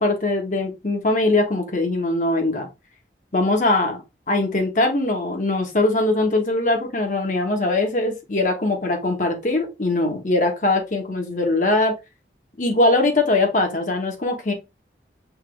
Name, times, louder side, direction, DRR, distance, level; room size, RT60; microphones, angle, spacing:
voice 1, 0.0-2.7 3.3-4.0 4.3-11.9 12.6-14.5, left 2 dB, 45° left, 3 dB, 1.2 m, -21 dB
5.8 x 2.7 x 3.3 m, 0.25 s
head